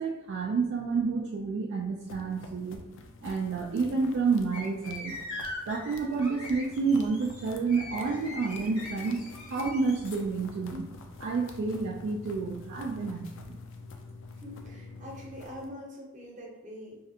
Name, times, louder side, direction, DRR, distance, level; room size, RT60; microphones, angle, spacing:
voice 1, 0.0-2.8 3.2-5.2 5.7-10.9 11.2-13.6, right 4 dB, 55° right, 0 dB, 0.3 m, -29 dB
sound 1, 2.0-15.7, left 3 dB, 60° left, 0.4 m, -47 dB
sound 2, 4.5-10.2, left 2 dB, 90° left, 1.2 m, -41 dB
voice 2, 14.4-17.0, left 1 dB, 35° right, -3 dB, 0.8 m, -44 dB
3.2 x 2.4 x 2.7 m, 0.98 s
head